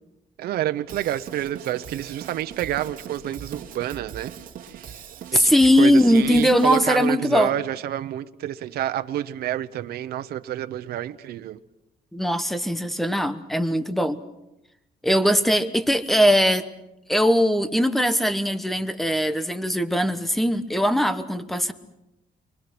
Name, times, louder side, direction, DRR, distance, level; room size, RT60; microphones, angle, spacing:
voice 1, 0.4-4.4 4.7-5.0 5.3-5.5 5.8-11.6, right 12 dB, 90° right, 0.9 m, -28 dB
Drum kit / Drum, 0.9-6.9, right 8 dB, 60° right, 2.5 m, -41 dB
voice 2, 5.3-7.5 12.1-14.2 15.0-16.7 17.1-21.7, equal, ahead, 1.1 m, -20 dB
29.0 x 24.0 x 6.2 m
cardioid pair, 170°, 16 cm